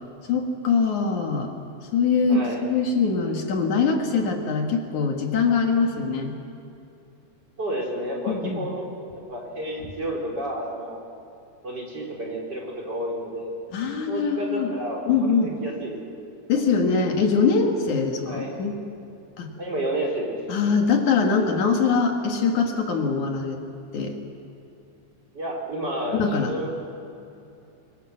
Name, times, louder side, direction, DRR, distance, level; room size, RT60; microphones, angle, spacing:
voice 1, 0.3-1.5 1.9-6.3 8.3-8.7 13.7-14.7 15.1-15.5 16.5-18.8 19.4-19.5 20.5-23.6 23.9-24.2 26.1-26.5, left 5 dB, 70° left, 3 dB, 3.2 m, -23 dB
voice 2, 2.3-2.6 7.6-8.9 9.3-11.0 11.6-13.5 14.1-16.0 18.2-18.5 19.6-20.4 25.3-26.7, right 1 dB, 30° right, -2 dB, 4.7 m, -30 dB
25.0 x 23.0 x 7.6 m, 2.8 s
omnidirectional pair, 3.7 m